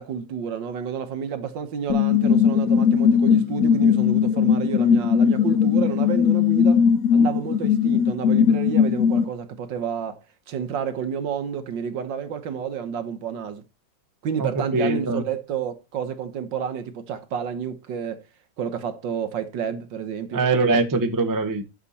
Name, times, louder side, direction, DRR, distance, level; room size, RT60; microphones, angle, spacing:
voice 1, 0.0-6.9 7.1-13.6 14.2-18.2 18.6-20.4, right 7 dB, 65° right, 1.7 m, -30 dB
sound 1, 1.9-9.2, left 7 dB, 65° left, 0.9 m, -19 dB
voice 2, 14.4-15.2 20.3-21.6, right 3 dB, 15° right, 0.8 m, -22 dB
9.8 x 6.8 x 4.2 m
omnidirectional pair, 2.2 m